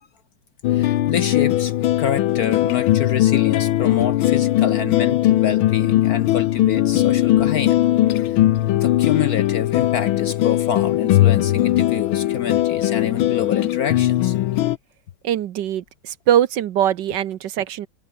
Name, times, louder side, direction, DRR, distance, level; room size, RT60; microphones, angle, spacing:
sound 1, 0.6-14.8, left 14 dB, 90° left, 1.6 m, -19 dB
voice 1, 0.7-1.7 2.0-7.8 8.1-8.3 8.7-14.3, left 8 dB, 60° left, 1.1 m, -27 dB
voice 2, 15.2-17.9, right 10 dB, 65° right, 1.4 m, -22 dB
omnidirectional pair, 2.2 m